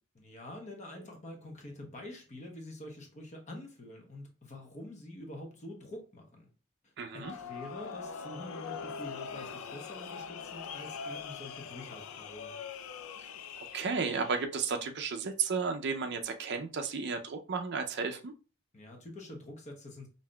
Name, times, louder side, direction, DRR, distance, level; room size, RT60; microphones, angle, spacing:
voice 1, 0.1-6.5 6.8-12.6 18.7-20.1, left 1 dB, 35° left, 2 dB, 0.9 m, -46 dB
voice 2, 7.0-7.3 13.7-18.3, right 5 dB, 55° right, 6 dB, 0.5 m, -33 dB
sound 1, 7.2-14.5, left 6 dB, 75° left, 0.4 m, -42 dB
5.5 x 2.6 x 2.2 m, 0.36 s
head